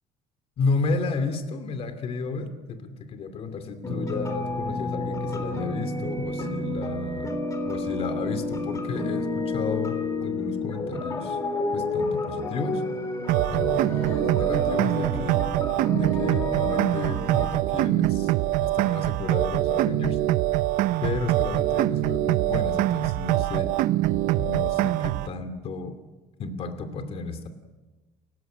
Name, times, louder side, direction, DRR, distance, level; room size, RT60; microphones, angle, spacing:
voice 1, 0.6-7.3 7.7-11.4 11.7-12.8 13.5-15.4 15.9-18.3 18.6-20.2 21.0-23.7 24.4-26.0 26.4-27.5, left 4 dB, 45° left, 9 dB, 2.6 m, -32 dB
sound 1, 3.8-17.6, left 2 dB, 25° left, 3.6 m, -30 dB
sound 2, 13.3-25.3, right 15 dB, 80° right, 0.7 m, -24 dB
29.0 x 15.5 x 9.2 m, 1.2 s
cardioid pair, 145°, 14 cm